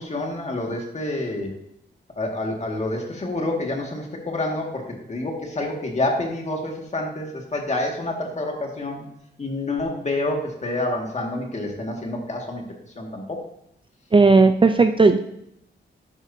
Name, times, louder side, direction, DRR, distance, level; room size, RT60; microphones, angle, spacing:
voice 1, 0.0-1.5 2.2-9.0 9.4-12.6 13.0-13.4, left 2 dB, 35° left, 1 dB, 1.9 m, -28 dB
voice 2, 14.1-15.2, right 3 dB, 25° right, 7 dB, 0.4 m, -15 dB
12.5 x 9.3 x 2.7 m, 0.77 s
wide cardioid pair, 165°, 19 cm